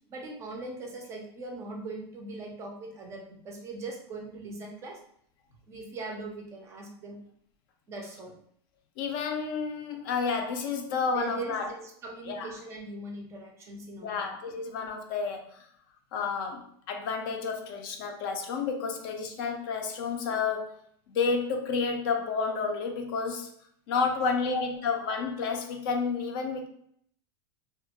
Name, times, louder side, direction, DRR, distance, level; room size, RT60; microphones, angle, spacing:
voice 1, 0.1-5.0 5.7-7.2 7.9-8.3 11.1-14.3 24.2-24.3, right 3 dB, 20° right, 1 dB, 0.4 m, -40 dB
voice 2, 9.0-11.7 12.3-12.5 14.0-15.7 16.1-20.7 21.1-23.5 23.9-26.7, left 5 dB, 55° left, 4 dB, 0.4 m, -30 dB
2.3 x 2.1 x 2.8 m, 0.67 s
supercardioid pair, 155°, 14 cm